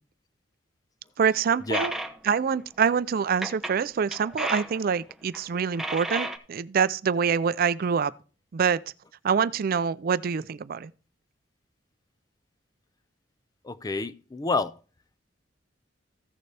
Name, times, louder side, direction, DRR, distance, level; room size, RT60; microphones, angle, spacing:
voice 1, 1.2-1.9 2.2-8.1 8.5-8.8 9.2-10.9, right 6 dB, 50° right, 0.4 m, -25 dB
sound 1, 1.7-2.4 3.4-3.8 4.1-4.8 5.1-5.4 5.7-6.4, right 1 dB, ahead, 0.9 m, -32 dB
voice 2, 13.6-14.8, left 3 dB, 20° left, 0.4 m, -29 dB
15.0 x 6.8 x 3.3 m
head